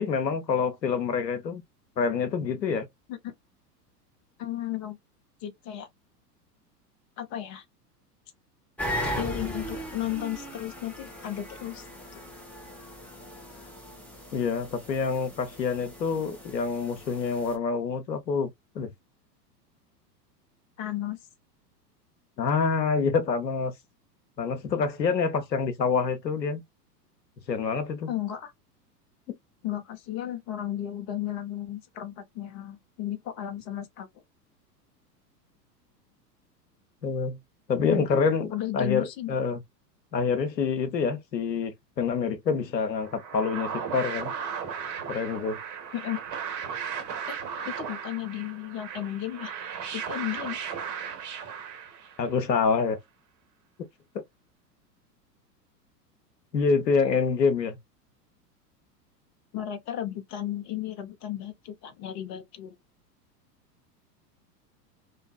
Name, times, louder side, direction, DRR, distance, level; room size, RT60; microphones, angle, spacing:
voice 1, 0.0-1.6 2.0-2.9 14.3-18.9 22.4-23.7 24.4-26.6 27.5-28.1 29.3-29.4 37.0-37.4 37.7-39.6 40.1-44.3 45.1-45.6 52.2-53.0 54.1-54.2 56.5-57.8, left 5 dB, 90° left, 0.7 m, -27 dB
voice 2, 4.4-5.0 5.4-5.9 7.2-7.6 9.2-11.9 12.1-12.2 20.8-21.2 28.1-28.5 29.6-34.1 37.9-38.2 38.5-39.4 45.9-46.2 47.3-47.4 47.6-49.5 49.9-50.6 59.5-62.7, left 12 dB, 35° left, 0.8 m, -34 dB
sound 1, 8.8-17.6, equal, 5° left, 0.9 m, -38 dB
sound 2, 43.0-52.4, right 7 dB, 35° right, 1.1 m, -36 dB
2.6 x 2.4 x 2.2 m
hypercardioid pair, 95°, 49 cm